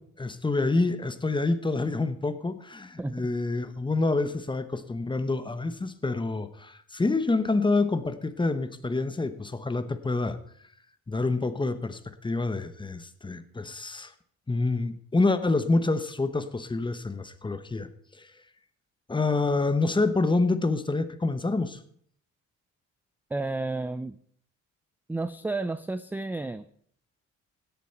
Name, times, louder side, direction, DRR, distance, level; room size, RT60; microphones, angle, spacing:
voice 1, 0.0-10.4 11.1-14.1 14.5-17.9 18.2-18.3 19.1-21.8, left 3 dB, 15° left, 12 dB, 1.0 m, -27 dB
voice 2, 23.3-24.2 25.1-26.6, right 2 dB, 5° right, 13 dB, 0.3 m, -31 dB
17.0 x 7.0 x 4.4 m, 0.63 s
cardioid pair, 90°, 30 cm